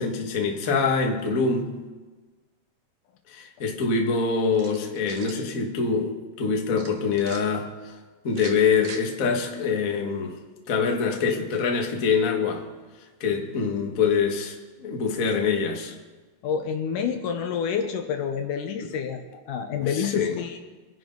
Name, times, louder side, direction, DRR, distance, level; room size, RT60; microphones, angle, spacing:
voice 1, 0.0-1.8 3.3-7.9 8.2-10.4 10.7-12.7 13.2-15.9 18.8-19.0 19.8-20.4, left 5 dB, 40° left, 2 dB, 1.2 m, -25 dB
sound 1, 4.5-5.4 6.8-7.4 8.3-9.0, right 5 dB, 70° right, 3.0 m, -41 dB
voice 2, 16.4-19.2 19.5-20.6, left 7 dB, 70° left, 5 dB, 2.5 m, -28 dB
25.5 x 11.0 x 4.0 m, 1.3 s
omnidirectional pair, 4.0 m